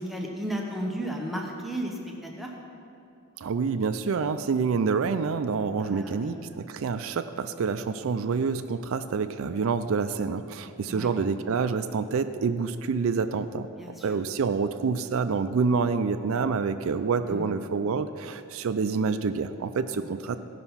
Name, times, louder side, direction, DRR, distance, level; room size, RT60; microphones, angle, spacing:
voice 1, 0.0-2.5 5.8-6.4 10.8-11.1 13.8-14.1 17.3-17.6 19.9-20.0, equal, ahead, -1 dB, 0.8 m, -34 dB
voice 2, 3.4-13.7 14.0-20.4, right 5 dB, 70° right, 10 dB, 0.4 m, -27 dB
16.0 x 5.7 x 5.6 m, 2.6 s
head